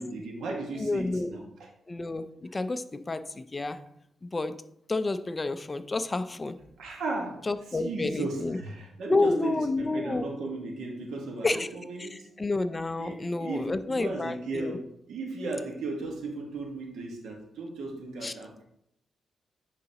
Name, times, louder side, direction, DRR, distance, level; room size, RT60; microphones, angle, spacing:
voice 1, 0.0-1.7 6.8-12.3 13.0-18.6, right 3 dB, 85° right, 1 dB, 1.4 m, -36 dB
voice 2, 0.8-1.3 1.9-3.8 4.2-4.6 4.9-6.6 7.4-8.6 9.1-10.3 11.4-11.7 12.0-14.8 18.2-18.3, left 2 dB, 25° left, 11 dB, 0.4 m, -30 dB
10.0 x 4.0 x 2.9 m, 0.74 s
cardioid pair, 100°, 0 cm